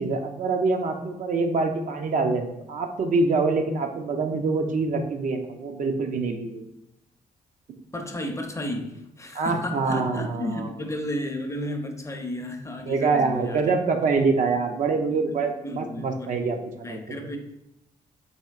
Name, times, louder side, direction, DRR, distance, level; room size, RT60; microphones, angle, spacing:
voice 1, 0.0-6.7 9.3-10.7 12.9-17.0, right 4 dB, 60° right, 4 dB, 0.5 m, -25 dB
voice 2, 7.9-13.7 15.1-15.3 15.6-17.4, left 1 dB, 20° left, 4 dB, 0.5 m, -33 dB
4.2 x 2.8 x 2.4 m, 0.86 s
cardioid pair, 65°, 15 cm